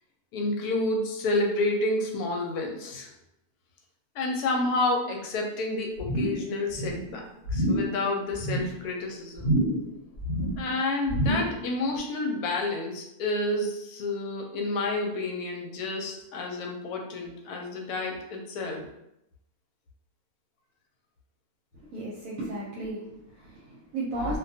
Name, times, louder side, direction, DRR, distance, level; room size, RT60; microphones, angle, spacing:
voice 1, 0.3-3.1 4.2-7.2 7.5-9.5 10.6-18.8, left 2 dB, 85° left, 2 dB, 1.1 m, -29 dB
sound 1, 6.0-6.5 6.7-7.1 7.4-7.9 8.3-8.8 9.4-9.9 10.2-10.7 11.1-11.6 12.0-12.1, equal, 60° left, 0.7 m, -27 dB
voice 2, 21.7-24.4, right 1 dB, 70° right, -6 dB, 0.9 m, -34 dB
2.4 x 2.2 x 2.6 m, 0.83 s
omnidirectional pair, 1.6 m